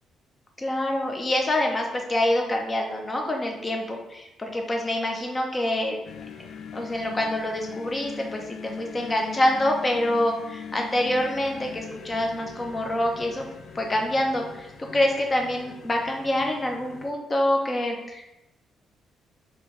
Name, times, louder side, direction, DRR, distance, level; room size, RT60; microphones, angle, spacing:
voice 1, 0.6-6.0 6.7-13.5 13.7-18.3, left 1 dB, 25° left, 2 dB, 0.6 m, -26 dB
sound 1, 6.0-17.1, left 7 dB, 65° left, 0.3 m, -42 dB
3.2 x 2.6 x 3.1 m, 0.92 s
cardioid pair, 90°, 0 cm